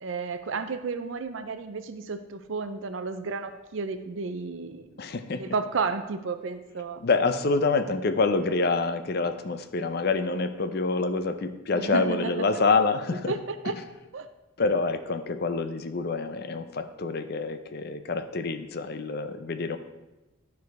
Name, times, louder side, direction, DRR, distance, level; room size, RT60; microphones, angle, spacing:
voice 1, 0.0-5.0 5.3-7.0 11.7-12.3 13.3-13.7 14.1-14.3, right 4 dB, 65° right, 10 dB, 0.5 m, -32 dB
voice 2, 5.0-5.5 7.0-13.3 14.6-19.8, left 3 dB, 50° left, 10 dB, 0.5 m, -27 dB
11.5 x 4.7 x 4.7 m, 1.0 s
head